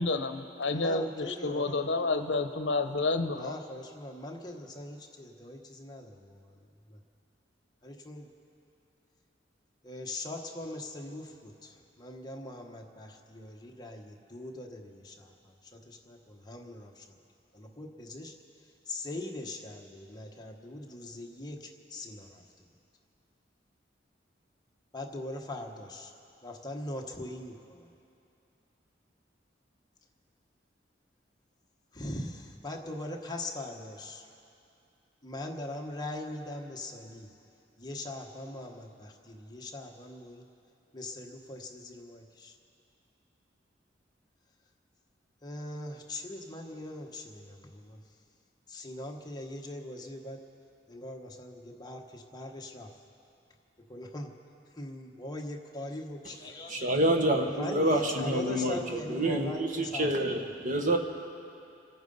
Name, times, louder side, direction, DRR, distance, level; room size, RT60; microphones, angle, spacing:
voice 1, 0.0-3.5, left 3 dB, 75° left, 8 dB, 0.8 m, -30 dB
voice 2, 0.7-1.8 3.3-6.6 6.9-7.0 7.8-8.3 9.8-17.2 17.5-22.7 24.9-26.1 26.4-27.9 31.9-34.3 35.2-37.3 37.8-40.5 40.9-42.6 45.4-48.0 48.7-50.4 50.9-53.0 53.8-54.3 54.7-57.0 57.3-60.5, left 1 dB, 20° left, 1 dB, 1.2 m, -41 dB
voice 3, 56.7-61.0, right 1 dB, 45° right, 3 dB, 1.3 m, -28 dB
27.5 x 9.2 x 5.4 m, 2.7 s
head